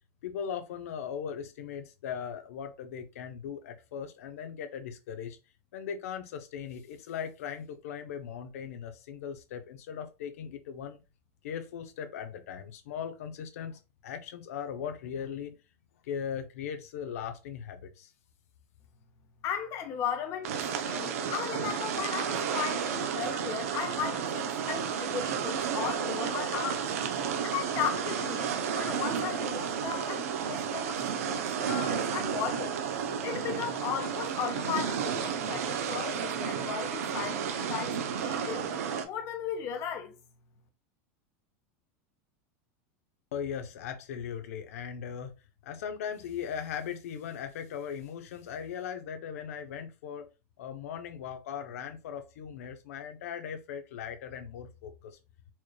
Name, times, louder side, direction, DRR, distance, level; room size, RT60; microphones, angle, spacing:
voice 1, 0.2-5.4 5.7-11.0 11.4-15.6 16.0-18.1 43.3-45.3 45.6-50.3 50.6-55.2, left 8 dB, 85° left, 0.7 m, -39 dB
voice 2, 19.4-26.9 27.4-32.8 33.2-38.7 39.0-40.1, left 8 dB, 35° left, 0.9 m, -36 dB
sound 1, 20.4-39.1, right 7 dB, 85° right, 0.7 m, -32 dB
4.3 x 3.2 x 2.2 m
supercardioid pair, 155°, 8 cm